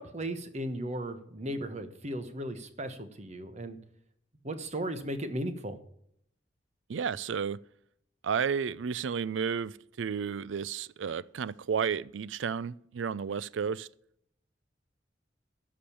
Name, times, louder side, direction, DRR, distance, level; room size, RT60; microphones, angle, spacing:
voice 1, 0.0-3.8 4.4-5.8, right 1 dB, 40° right, 1.2 m, -36 dB
voice 2, 6.9-7.6 8.2-13.9, right 6 dB, 90° right, 0.4 m, -32 dB
13.0 x 5.2 x 8.4 m
head